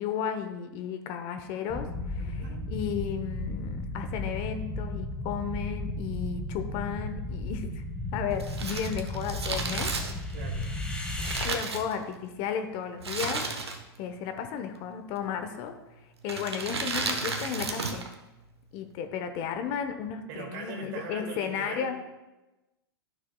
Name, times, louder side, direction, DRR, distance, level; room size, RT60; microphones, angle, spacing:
voice 1, 0.0-2.4 2.7-7.8 8.1-9.9 11.4-13.5 14.0-15.7 16.2-18.0 18.7-22.0, left 8 dB, 45° left, 7 dB, 0.9 m, -34 dB
sound 1, 1.7-11.5, left 1 dB, 10° left, 1.3 m, -34 dB
voice 2, 2.2-2.6 10.3-10.7 20.3-22.0, right 4 dB, 50° right, 1 dB, 2.1 m, -41 dB
Crumpling crinkling, 8.4-12.4 13.0-14.0 14.3-14.4 15.2-15.6 16.2-18.1 18.4-18.5, right 3 dB, 90° right, 1.0 m, -33 dB
12.5 x 6.6 x 2.3 m, 1.0 s
hypercardioid pair, 105°, 13 cm